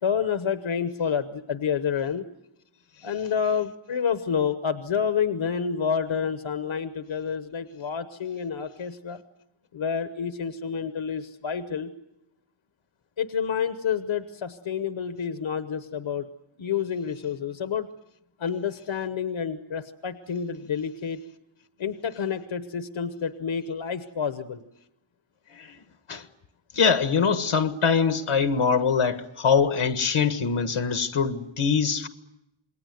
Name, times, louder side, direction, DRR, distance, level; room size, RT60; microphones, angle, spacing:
voice 1, 0.0-2.2 3.0-9.2 9.7-11.9 13.2-16.3 16.6-17.9 18.4-21.2 21.8-24.6, left 7 dB, 70° left, 1.1 m, -29 dB
voice 2, 26.7-32.1, left 6 dB, 90° left, 1.6 m, -23 dB
28.0 x 21.0 x 9.3 m
wide cardioid pair, 90°, 48 cm